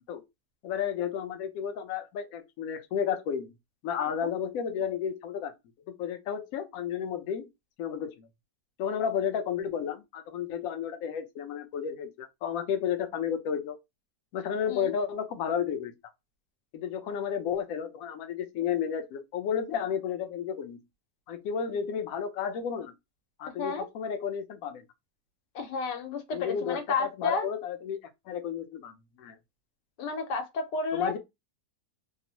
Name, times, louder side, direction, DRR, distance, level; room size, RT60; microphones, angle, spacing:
voice 1, 0.6-3.5 3.8-5.5 6.0-7.5 7.8-8.3 8.8-13.8 14.3-15.9 16.7-20.8 21.3-22.9 23.4-24.8 26.3-29.4 30.9-31.2, left 8 dB, 70° left, 0.9 m, -32 dB
voice 2, 25.5-27.5 30.0-31.2, left 4 dB, 85° left, 1.3 m, -31 dB
3.0 x 2.0 x 2.7 m
omnidirectional pair, 1.8 m